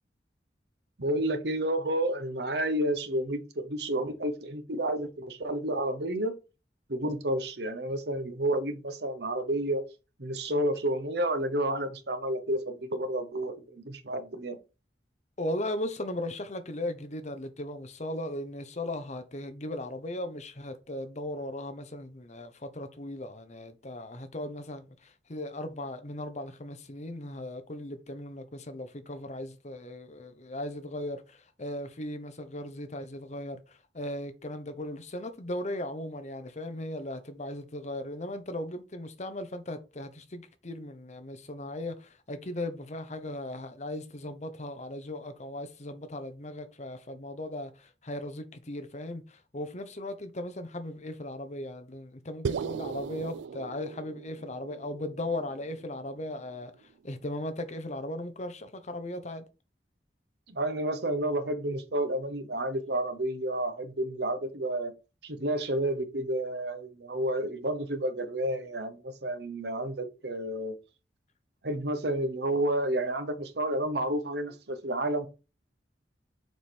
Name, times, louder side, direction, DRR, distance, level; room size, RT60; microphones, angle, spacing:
voice 1, 1.0-6.3 6.9-9.8 10.2-14.6 60.5-64.9 65.2-70.8 71.6-75.3, right 1 dB, 65° right, 1.1 m, -30 dB
voice 2, 15.4-59.5, left 1 dB, 40° left, 0.9 m, -37 dB
sound 1, 52.4-56.8, right 6 dB, 80° right, 0.3 m, -38 dB
6.4 x 5.0 x 4.4 m
head